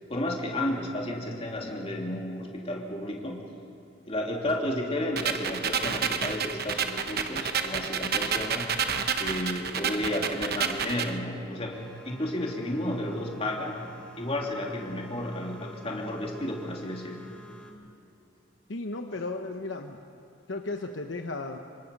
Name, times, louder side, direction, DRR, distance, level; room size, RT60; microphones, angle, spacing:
voice 1, 0.1-3.4 4.0-8.7 9.2-13.8 14.2-17.2, left 1 dB, 30° left, -1 dB, 3.1 m, -32 dB
sound 1, 5.2-11.1, right 6 dB, 50° right, 1.0 m, -30 dB
sound 2, 11.7-17.7, right 1 dB, 5° left, 2.1 m, -48 dB
voice 2, 18.7-20.0 20.5-21.6, left 2 dB, 65° left, 4 dB, 1.0 m, -34 dB
27.5 x 24.5 x 5.4 m, 2.9 s
head